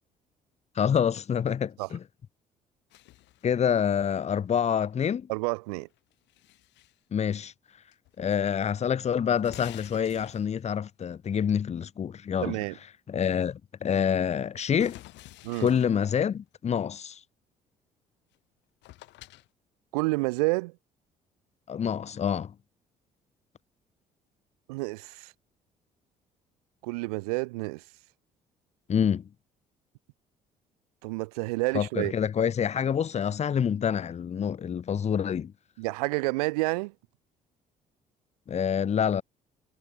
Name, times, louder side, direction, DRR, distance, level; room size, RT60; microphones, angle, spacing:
voice 1, 0.8-2.0 3.4-5.3 7.1-7.5 8.2-12.6 13.1-15.0 15.6-17.2 21.7-22.5 28.9-29.3 31.7-35.5 38.5-39.2, left 8 dB, 35° left, 0.7 m, -27 dB
sound 1, 2.9-3.6 5.9-7.0 7.9-8.4 8.7-8.8 9.3-10.7 14.8-16.2 18.3-18.4 18.8-19.5, left 17 dB, 65° left, 3.4 m, -49 dB
voice 2, 5.3-5.9 12.4-12.7 15.4-15.7 19.9-20.7 24.7-25.3 26.8-27.8 31.0-32.1 35.8-36.9, right 25 dB, 75° right, 1.8 m, -29 dB
hypercardioid pair, 50°, 20 cm